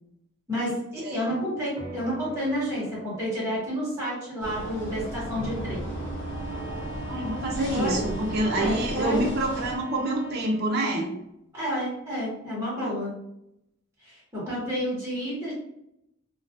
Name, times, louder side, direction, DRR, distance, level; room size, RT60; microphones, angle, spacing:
voice 1, 0.5-5.8 7.7-8.0 8.6-9.2 11.5-13.1 14.0-15.5, equal, 15° right, -9 dB, 0.9 m, -30 dB
sound 1, 1.8-10.5, right 2 dB, 30° left, 1.1 m, -42 dB
sound 2, 4.4-9.8, equal, 60° left, 0.6 m, -35 dB
Bowed string instrument, 5.9-10.8, left 2 dB, 5° left, 1.2 m, -43 dB
voice 2, 7.1-11.1, right 1 dB, 50° right, -1 dB, 0.5 m, -27 dB
2.2 x 2.2 x 2.7 m, 0.81 s
head